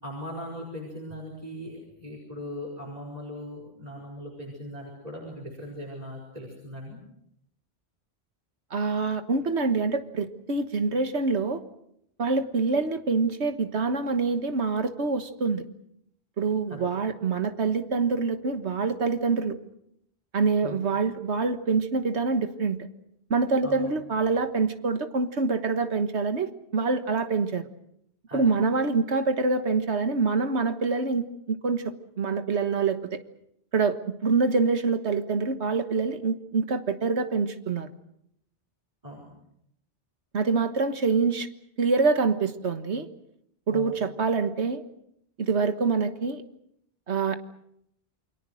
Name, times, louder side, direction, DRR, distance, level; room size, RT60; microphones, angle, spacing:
voice 1, 0.0-7.0 16.7-16.9 20.6-20.8 23.6-23.9 28.3-28.5 39.0-39.3 43.7-43.9, equal, 35° right, -1 dB, 5.1 m, -39 dB
voice 2, 8.7-11.6 12.2-15.6 16.4-19.6 20.3-22.8 23.3-27.6 28.3-31.8 32.2-33.2 33.7-34.0 34.2-37.9 40.3-41.5 41.8-43.1 43.7-44.8 45.4-46.4 47.1-47.4, right 4 dB, 80° right, 9 dB, 1.7 m, -25 dB
28.5 x 23.0 x 6.4 m, 0.75 s
omnidirectional pair, 1.1 m